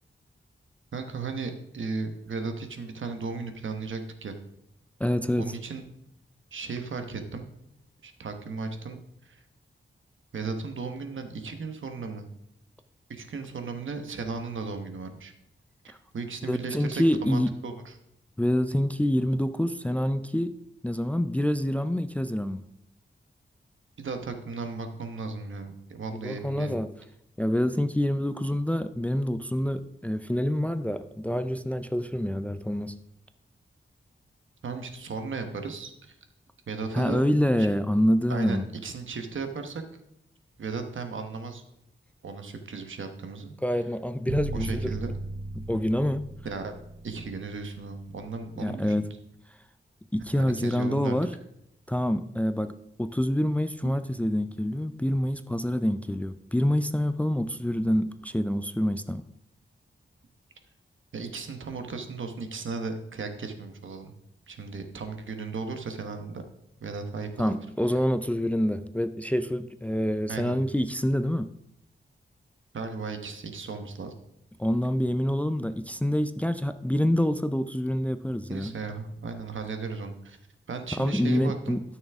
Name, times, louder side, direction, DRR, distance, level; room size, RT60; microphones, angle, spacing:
voice 1, 0.9-4.3 5.4-5.8 6.5-7.5 8.0-9.4 10.3-12.3 13.1-15.3 16.1-17.9 24.0-26.8 34.6-36.2 36.7-37.2 37.6-37.7 38.3-39.8 40.6-41.6 42.2-43.5 44.5-45.1 46.4-46.7 47.0-49.1 50.4-51.2 53.8-53.9 61.1-64.1 64.5-66.4 66.8-67.6 70.3-70.6 72.7-74.1 78.5-80.4 80.7-81.8, right 4 dB, 75° right, 6 dB, 1.1 m, -36 dB
voice 2, 5.0-5.5 15.9-16.0 16.5-17.5 18.4-20.6 20.8-22.6 26.2-26.9 27.4-33.0 36.9-38.7 43.6-44.9 45.6-46.3 48.6-49.1 50.1-51.3 51.9-59.2 67.4-71.5 74.6-78.7 81.0-81.8, equal, 5° left, 11 dB, 0.4 m, -26 dB
sound 1, 44.3-48.4, right 2 dB, 45° right, 0.8 m, -37 dB
12.5 x 6.3 x 3.5 m, 0.80 s
wide cardioid pair, 130°, 20 cm